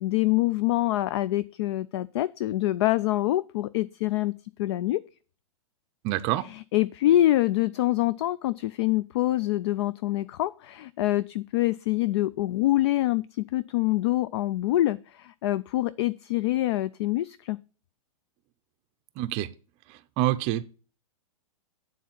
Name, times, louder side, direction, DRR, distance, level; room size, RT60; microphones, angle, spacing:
voice 1, 0.0-5.0 6.5-17.6, left 15 dB, 50° left, 17 dB, 0.4 m, -25 dB
voice 2, 6.0-6.5 19.2-19.5 19.9-20.6, right 14 dB, 35° right, 9 dB, 0.5 m, -27 dB
9.3 x 4.1 x 7.3 m, 0.37 s
figure-of-eight pair, 105°, 18 cm